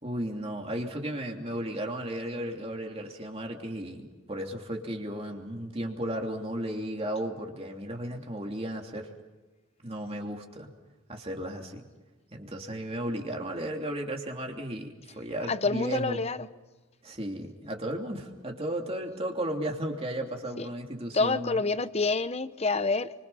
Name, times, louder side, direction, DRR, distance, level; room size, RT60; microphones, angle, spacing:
voice 1, 0.0-9.1 9.8-10.7 11.1-11.9 12.3-16.3 17.0-21.6, right 1 dB, 30° right, 2 dB, 2.9 m, -34 dB
voice 2, 15.5-16.4 20.6-20.7 21.1-23.1, left 3 dB, 30° left, 13 dB, 0.8 m, -27 dB
29.5 x 25.0 x 5.7 m, 1.2 s
head